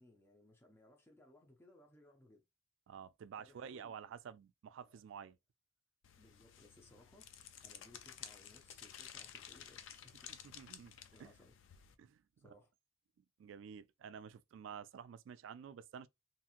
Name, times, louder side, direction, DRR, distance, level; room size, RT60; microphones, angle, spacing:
voice 1, 0.0-2.4 3.4-3.9 4.9-5.3 6.2-7.3 7.6-10.5 11.1-11.5 12.4-12.7, left 1 dB, 15° left, 0.5 m, -64 dB
voice 2, 2.9-5.4 10.4-11.3 12.0-12.5 13.2-16.1, right 7 dB, 80° right, 0.3 m, -51 dB
sound 1, 6.0-12.0, left 9 dB, 90° left, 0.4 m, -54 dB
2.8 x 2.7 x 2.4 m
head